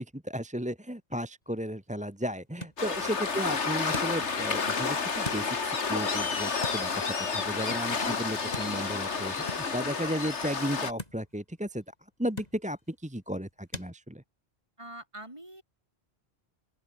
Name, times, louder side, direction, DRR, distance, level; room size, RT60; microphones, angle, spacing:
voice 1, 0.0-11.8 12.2-14.2, equal, 5° right, 1.5 m, -34 dB
sound 1, 1.4-13.9, left 2 dB, 35° left, 3.8 m, -47 dB
Waves surf, 2.8-10.9, left 5 dB, 85° left, 2.2 m, -30 dB
voice 2, 14.8-15.6, right 1 dB, 25° right, 4.3 m, -47 dB
open air
omnidirectional pair, 1.1 m